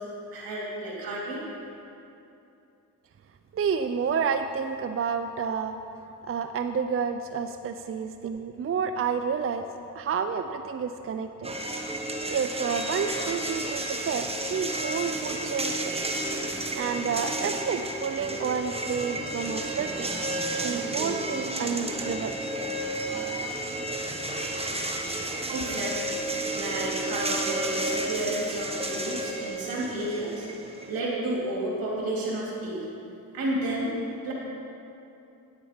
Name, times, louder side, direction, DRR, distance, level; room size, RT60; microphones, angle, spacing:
voice 1, 0.3-1.4 25.5-26.2 26.5-30.5 30.9-32.9 33.3-33.9 34.2-34.3, right 1 dB, 80° right, -4 dB, 2.7 m, -31 dB
voice 2, 3.5-5.8 6.3-9.6 9.9-11.5 12.3-16.0 16.7-20.1 20.6-22.5 25.7-25.8, right 6 dB, 40° right, 8 dB, 0.5 m, -30 dB
sound 1, 11.4-31.0, right 1 dB, 15° right, 1.1 m, -32 dB
9.7 x 8.1 x 5.1 m, 2.7 s
cardioid pair, 65°, 35 cm